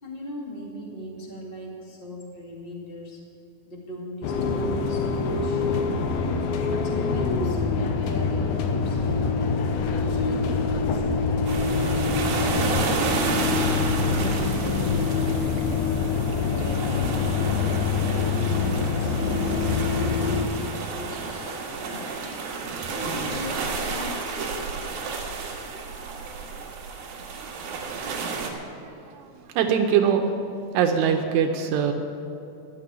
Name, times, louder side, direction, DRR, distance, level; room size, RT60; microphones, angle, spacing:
voice 1, 0.0-3.2 3.6-5.6 6.6-7.6 7.9-9.8 10.1-12.8 13.1-13.7 14.1-15.6 16.6-19.1 19.6-22.1 22.9-24.3, left 1 dB, 25° left, -2 dB, 1.2 m, -38 dB
sound 1, 4.2-20.4, left 4 dB, 75° left, 2.4 m, -25 dB
sound 2, 11.5-28.5, right 4 dB, 65° right, 3.2 m, -31 dB
voice 2, 28.8-30.2 30.7-31.9, right 8 dB, 85° right, 5 dB, 2.8 m, -23 dB
14.0 x 6.8 x 9.7 m, 2.7 s
omnidirectional pair, 4.9 m